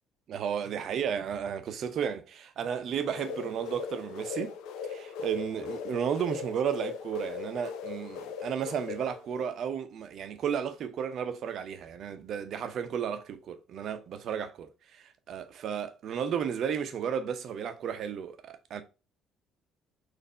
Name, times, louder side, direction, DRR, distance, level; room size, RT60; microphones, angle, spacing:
voice 1, 0.3-4.5 4.8-18.8, right 8 dB, 60° right, 0.7 m, -33 dB
sound 1, 3.0-9.6, left 6 dB, 70° left, 0.5 m, -39 dB
4.2 x 2.7 x 4.2 m
hypercardioid pair, 55°, 0 cm